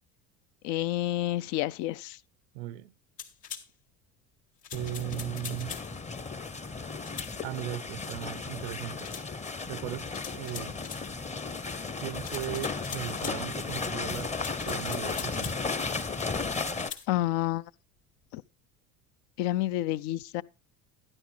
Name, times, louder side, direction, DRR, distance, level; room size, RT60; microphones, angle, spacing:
voice 1, 0.6-2.2 17.1-17.6 18.3-18.4 19.4-20.4, left 14 dB, 60° left, 0.6 m, -29 dB
voice 2, 2.5-2.9 4.7-5.8 7.4-9.1 9.7-10.8 12.0-14.3 14.7-15.6, right 15 dB, 65° right, 0.6 m, -37 dB
sound 1, 3.2-3.7 4.6-5.9 7.0-7.3 9.0-9.3 10.1-11.0 12.2-13.4 14.3-15.6 16.7-17.1, left 8 dB, 80° left, 2.0 m, -42 dB
sound 2, 4.7-16.9, left 4 dB, 15° left, 0.7 m, -35 dB
12.0 x 10.5 x 3.2 m
hypercardioid pair, 70°, 48 cm